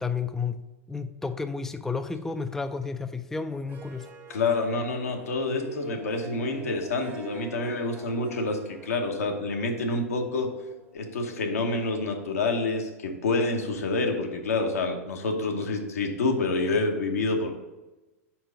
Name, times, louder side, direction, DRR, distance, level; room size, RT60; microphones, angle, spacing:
voice 1, 0.0-4.1, left 4 dB, 5° left, 8 dB, 0.3 m, -32 dB
Harp, 3.5-12.1, right 4 dB, 25° right, 0.8 m, -48 dB
voice 2, 4.3-10.5 10.9-17.5, left 3 dB, 80° left, 3 dB, 1.0 m, -27 dB
4.8 x 4.5 x 5.1 m, 1.1 s
hypercardioid pair, 100°, 8 cm